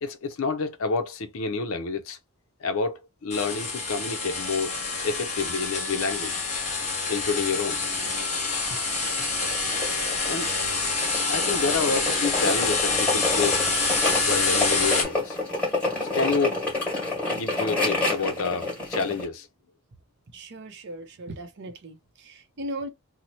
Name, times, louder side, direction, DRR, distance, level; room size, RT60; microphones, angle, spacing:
voice 1, 0.0-2.2 2.6-4.7 5.0-6.4 7.1-7.8 10.3-10.5 11.3-13.6 14.2-15.4 16.0-16.6 17.3-19.5, left 4 dB, 65° left, 0.6 m, -28 dB
sound 1, 3.3-15.0, left 3 dB, 30° left, 1.0 m, -27 dB
sound 2, 7.3-19.2, left 2 dB, 5° left, 1.5 m, -29 dB
voice 2, 20.3-22.9, right 1 dB, 50° right, 0.5 m, -38 dB
2.9 x 2.1 x 4.1 m
head